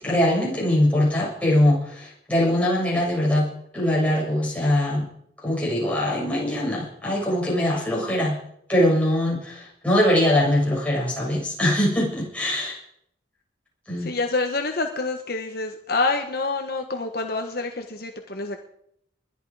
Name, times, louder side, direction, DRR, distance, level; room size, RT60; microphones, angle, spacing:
voice 1, 0.0-5.1 5.4-8.4 8.7-12.8 13.9-14.1, left 1 dB, 5° left, -5 dB, 6.8 m, -22 dB
voice 2, 14.0-18.6, left 3 dB, 55° left, 4 dB, 1.3 m, -27 dB
21.5 x 11.0 x 5.0 m, 0.71 s
head